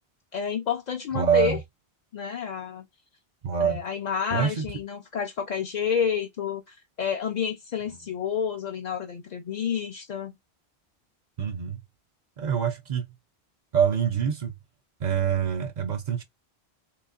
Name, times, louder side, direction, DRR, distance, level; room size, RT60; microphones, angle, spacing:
voice 1, 0.3-1.6 2.1-2.9 3.6-10.4, left 7 dB, 50° left, 0.5 m, -29 dB
voice 2, 1.1-1.6 3.4-3.8 4.3-4.6 11.4-11.8 12.4-13.1 13.7-14.5 15.0-16.2, right 8 dB, 55° right, 0.5 m, -25 dB
3.9 x 3.0 x 2.4 m
omnidirectional pair, 1.1 m